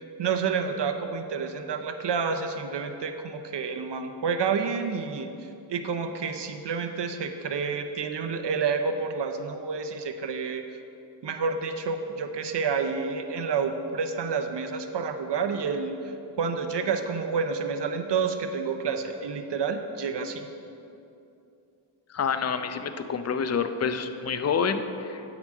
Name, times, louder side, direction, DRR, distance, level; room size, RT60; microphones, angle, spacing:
voice 1, 0.2-5.3 5.7-10.6 11.2-20.5, right 5 dB, 60° right, 7 dB, 0.7 m, -29 dB
voice 2, 22.1-25.2, left 6 dB, 35° left, 9 dB, 0.5 m, -28 dB
9.6 x 5.1 x 7.5 m, 2.7 s
wide cardioid pair, 105°, 47 cm